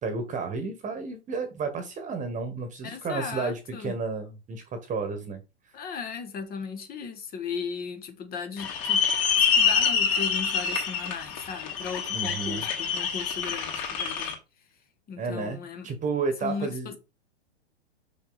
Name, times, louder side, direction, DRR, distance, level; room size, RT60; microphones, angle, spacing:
voice 1, 0.0-5.4 12.1-12.7 15.2-17.0, right 4 dB, 20° right, 1.6 m, -32 dB
voice 2, 2.8-4.0 5.7-9.0 9.4-14.4 15.1-15.9 16.4-17.0, left 6 dB, 25° left, 1.4 m, -36 dB
sound 1, 8.6-14.3, left 6 dB, 40° left, 3.1 m, -26 dB
6.1 x 6.1 x 4.1 m
hypercardioid pair, 115°, 34 cm